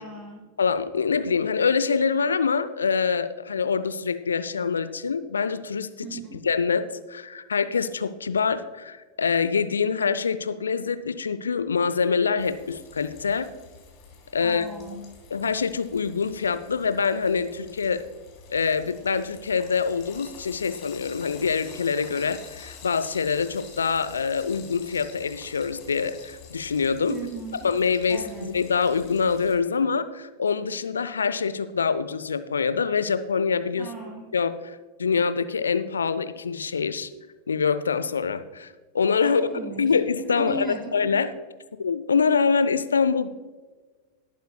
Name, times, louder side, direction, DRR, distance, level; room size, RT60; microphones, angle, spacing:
voice 1, 0.0-0.4 6.0-6.4 14.4-15.0 27.1-27.7 28.1-28.6 33.8-34.3 39.2-39.9 40.2-41.1, right 3 dB, 15° right, -1 dB, 2.6 m, -36 dB
voice 2, 0.6-13.5 14.3-14.6 15.3-18.0 18.5-27.2 27.6-33.9 34.3-37.1 37.5-39.5 39.8-40.7 40.9-41.3 41.8-43.3, left 5 dB, 70° left, 13 dB, 0.6 m, -25 dB
Frying (food), 12.4-29.5, left 6 dB, 40° left, 3.0 m, -48 dB
18.0 x 9.2 x 2.2 m, 1.3 s
figure-of-eight pair, 90°, 0 cm